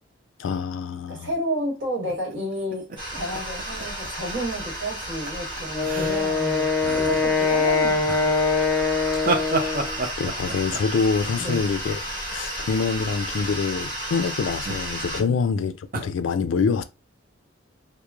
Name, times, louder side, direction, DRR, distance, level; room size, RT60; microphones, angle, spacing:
voice 1, 0.4-1.3 9.1-12.0 12.3-16.8, left 5 dB, 90° left, 0.3 m, -26 dB
voice 2, 1.1-2.8 3.1-8.3 11.4-11.6 15.2-15.3, equal, 75° right, 1.4 m, -31 dB
sound 1, 2.1-4.8 5.0-5.3 5.6-6.5 6.8-7.4 8.1-12.3 13.3-13.7 14.5-15.3 15.9-16.1, right 3 dB, 50° right, 0.5 m, -32 dB
sound 2, 3.0-15.2, right 1 dB, 25° right, 1.1 m, -33 dB
Wind instrument woodwind instrument, 5.7-10.0, left 4 dB, 10° left, 0.5 m, -23 dB
3.0 x 2.1 x 2.3 m
head